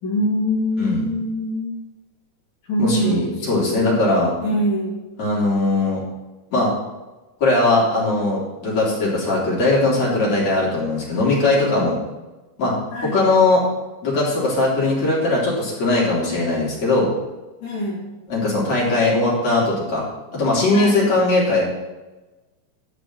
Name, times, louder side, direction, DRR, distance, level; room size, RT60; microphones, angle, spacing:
voice 1, 0.0-1.8 2.7-4.0 4.4-5.0 12.9-13.2 17.6-18.0 20.7-21.1, equal, 40° left, -6 dB, 3.3 m, -24 dB
voice 2, 2.8-4.3 5.2-6.0 6.5-6.7 7.4-12.0 12.6-12.7 13.1-13.6 14.0-17.1 18.3-20.0 20.3-21.6, left 2 dB, 55° left, -6 dB, 4.7 m, -19 dB
12.0 x 5.2 x 7.7 m, 1.1 s
omnidirectional pair, 3.7 m